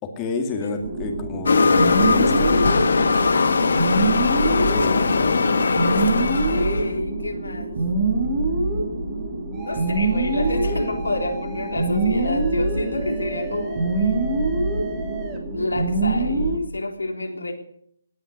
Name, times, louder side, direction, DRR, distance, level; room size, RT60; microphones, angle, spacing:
voice 1, 0.0-2.5 4.5-5.4, left 4 dB, 20° left, 3 dB, 2.3 m, -30 dB
sound 1, 0.8-16.6, right 2 dB, 40° right, 5.4 m, -24 dB
sound 2, 1.5-6.9, left 4 dB, 70° left, 1.7 m, -20 dB
voice 2, 3.1-3.5 6.1-7.7 9.6-14.5 15.5-17.5, left 2 dB, 90° left, 2 dB, 3.7 m, -29 dB
sound 3, 9.5-15.4, right 3 dB, 20° right, 2.9 m, -38 dB
18.0 x 9.7 x 8.1 m, 0.68 s
figure-of-eight pair, 150°, 0 cm